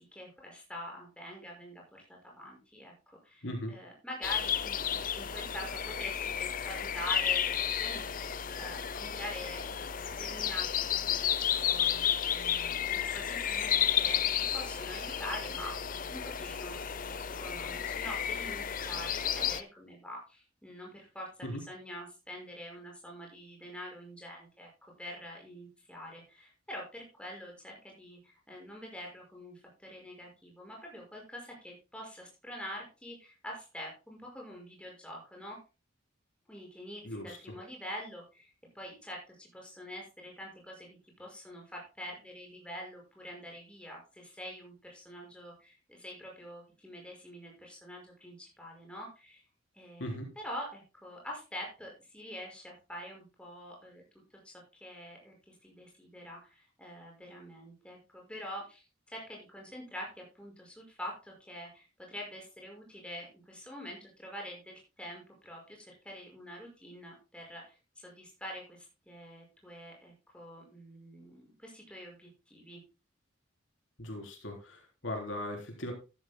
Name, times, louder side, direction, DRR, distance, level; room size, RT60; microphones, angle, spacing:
voice 1, 0.1-15.7 16.1-24.7 25.0-35.6 36.5-40.9 41.2-49.4 49.7-54.0 54.7-72.8, equal, 5° left, 0 dB, 5.6 m, -45 dB
sound 1, 4.2-19.6, left 9 dB, 45° left, 0.6 m, -32 dB
voice 2, 37.0-37.4 50.0-50.3 74.0-75.9, left 1 dB, 70° left, 2 dB, 3.7 m, -38 dB
13.5 x 13.0 x 2.2 m, 0.29 s
head